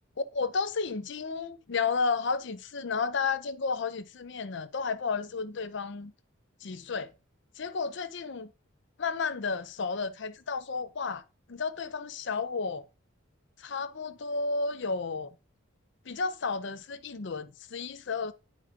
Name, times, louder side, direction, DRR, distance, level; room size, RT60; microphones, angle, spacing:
voice 1, 0.3-6.1 6.6-7.1 7.6-8.5 9.0-11.2 11.5-12.9 13.6-15.3 16.1-18.3, left 4 dB, 55° left, 0.6 m, -32 dB
9.9 x 4.8 x 3.6 m
head